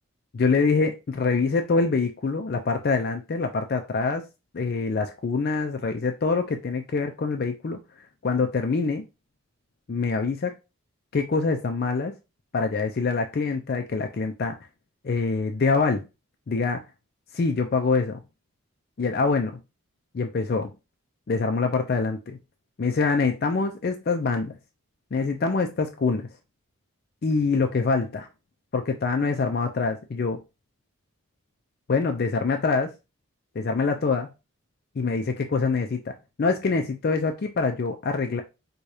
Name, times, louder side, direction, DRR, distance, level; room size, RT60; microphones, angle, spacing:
voice 1, 0.3-4.2 4.5-7.8 8.2-9.0 9.9-10.6 11.1-12.1 12.5-14.6 15.0-16.0 16.5-16.8 17.3-18.2 19.0-19.6 20.1-20.7 21.3-22.4 22.8-24.6 25.1-26.3 27.2-28.3 28.7-30.4 31.9-32.9 33.6-34.3 35.0-36.1 36.4-38.4, left 4 dB, 45° left, 0.4 m, -25 dB
4.7 x 2.3 x 2.7 m
head